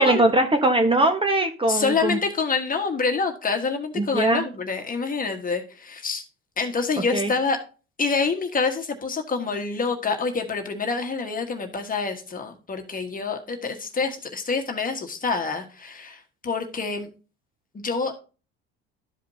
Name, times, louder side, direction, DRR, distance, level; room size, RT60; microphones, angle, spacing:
voice 1, 0.0-2.2 3.9-4.4 7.1-7.3, right 1 dB, 20° right, 6 dB, 1.3 m, -21 dB
voice 2, 1.7-6.2 6.6-7.6 8.0-17.1 17.7-18.1, left 4 dB, 30° left, 4 dB, 1.5 m, -27 dB
12.5 x 5.1 x 2.8 m, 0.35 s
supercardioid pair, 90°, 29 cm